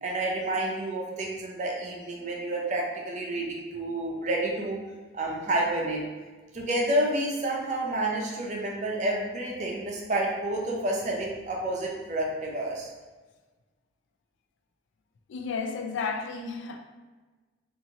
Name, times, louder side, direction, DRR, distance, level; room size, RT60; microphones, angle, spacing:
voice 1, 0.0-4.8 5.1-6.0 6.5-12.9, right 1 dB, 40° right, -1 dB, 0.5 m, -29 dB
voice 2, 15.3-16.8, left 5 dB, 75° left, 5 dB, 0.3 m, -32 dB
2.8 x 2.5 x 2.8 m, 1.3 s
head